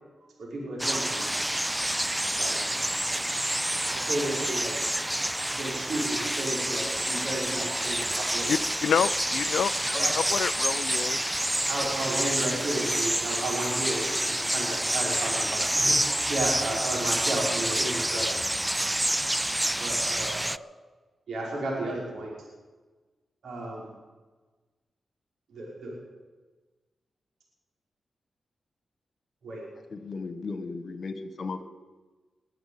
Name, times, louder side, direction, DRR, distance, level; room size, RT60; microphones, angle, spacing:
voice 1, 0.4-1.4 2.4-2.8 3.8-5.1 5.5-8.6 9.9-10.1 11.6-18.3 19.8-20.5 21.3-22.3 23.4-23.9 25.5-26.0 29.4-29.6, right 1 dB, 80° right, -3 dB, 5.3 m, -33 dB
sound 1, 0.8-20.6, right 1 dB, 10° right, 0.5 m, -28 dB
voice 2, 8.5-11.3, left 8 dB, 85° left, 18 dB, 0.5 m, -28 dB
voice 3, 29.9-31.6, left 4 dB, 60° left, 10 dB, 1.7 m, -36 dB
21.0 x 7.9 x 8.1 m, 1.3 s
cardioid pair, 50°, 0 cm